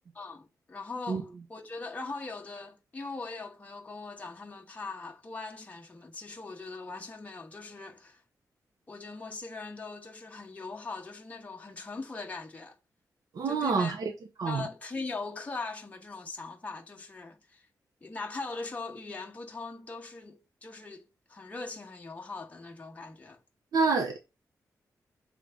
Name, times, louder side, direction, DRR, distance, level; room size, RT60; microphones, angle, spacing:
voice 1, 0.1-8.2 8.9-12.8 13.4-13.9 14.4-17.7 18.0-23.4, left 3 dB, 20° left, 1.3 m, -41 dB
voice 2, 13.3-14.1 14.4-14.6 23.7-24.2, right 4 dB, 70° right, 1.0 m, -27 dB
7.2 x 3.3 x 5.2 m
wide cardioid pair, 110°, 7 cm